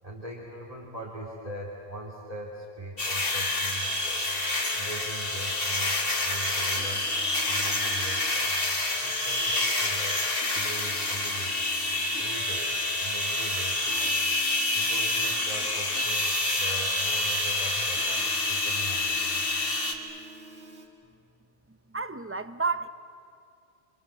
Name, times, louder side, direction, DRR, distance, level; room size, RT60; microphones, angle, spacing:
voice 1, 0.0-4.3 4.7-6.0 6.2-8.6 9.0-10.3 10.5-11.8 12.2-14.1 14.7-19.3, right 1 dB, 30° right, -4 dB, 3.4 m, -41 dB
sound 1, 3.0-19.9, left 2 dB, 50° left, 2.4 m, -28 dB
Keyboard (musical), 3.8-20.9, right 2 dB, 85° right, 3.1 m, -44 dB
voice 2, 21.9-22.9, right 4 dB, 15° right, 11 dB, 0.6 m, -30 dB
29.0 x 26.0 x 7.7 m, 2.5 s
omnidirectional pair, 1.2 m